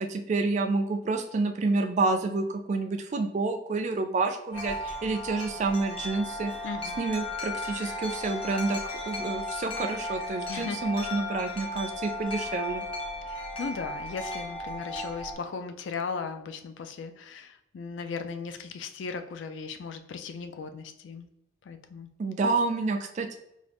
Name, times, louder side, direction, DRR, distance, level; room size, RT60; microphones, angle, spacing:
voice 1, 0.0-6.5 7.0-12.8 22.2-23.4, right 3 dB, 40° right, 6 dB, 0.3 m, -29 dB
Wind chime, 4.5-15.3, left 1 dB, 30° left, 0.9 m, -35 dB
voice 2, 6.6-7.0 10.5-10.8 13.2-21.3 21.7-22.1, left 5 dB, 80° left, 8 dB, 0.4 m, -37 dB
3.9 x 2.3 x 3.4 m, 0.83 s
head